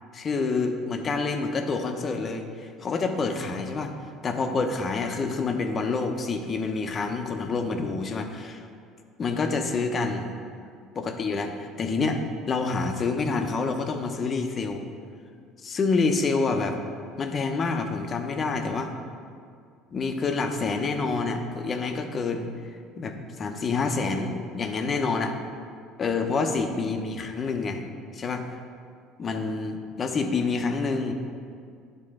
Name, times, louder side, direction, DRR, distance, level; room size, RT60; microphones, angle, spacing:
voice 1, 0.1-3.9 4.2-8.6 9.2-10.3 10.9-12.2 12.5-14.8 15.6-16.8 17.2-18.9 19.9-22.5 23.0-25.4 26.0-27.8 28.1-28.5 29.2-31.1, left 4 dB, 35° left, 5 dB, 0.7 m, -27 dB
10.5 x 3.7 x 3.7 m, 2.2 s
supercardioid pair, 85°, 0 cm